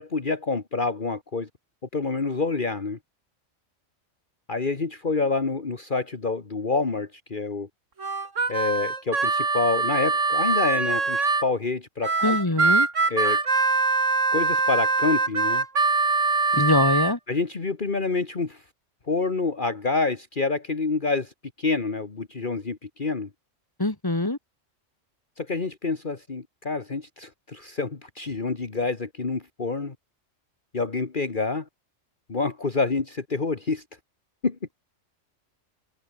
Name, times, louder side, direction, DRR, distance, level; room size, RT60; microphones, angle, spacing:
voice 1, 0.0-1.5 1.9-3.0 4.5-7.7 8.5-12.4 13.1-13.4 14.3-15.6 17.3-18.6 19.1-21.3 21.6-23.3 25.4-29.9 30.7-31.7 32.3-33.8 34.4-34.6, left 3 dB, 40° left, 1.9 m, -27 dB
Harmonica, 8.0-11.5 12.0-17.1, right 4 dB, 80° right, 3.0 m, -23 dB
voice 2, 12.2-12.9 16.5-17.2 23.8-24.4, left 2 dB, 15° left, 2.5 m, -23 dB
omnidirectional pair, 1.3 m